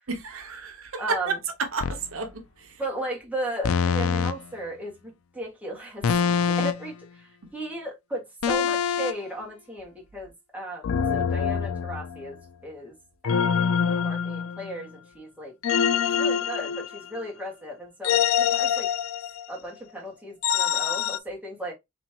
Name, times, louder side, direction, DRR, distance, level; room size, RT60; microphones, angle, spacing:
voice 1, 0.1-2.8, right 4 dB, 75° right, 0.9 m, -31 dB
voice 2, 1.0-1.4 2.8-12.9 13.2-15.5 16.0-18.9 19.5-21.7, right 1 dB, 5° right, 1.8 m, -36 dB
sound 1, 1.8-2.1 3.6-4.3 6.0-6.9 8.4-9.1 10.8-12.3 13.2-14.8 15.6-17.3 18.0-19.5 20.4-21.2, left 7 dB, 90° left, 0.4 m, -25 dB
5.4 x 3.1 x 2.9 m
head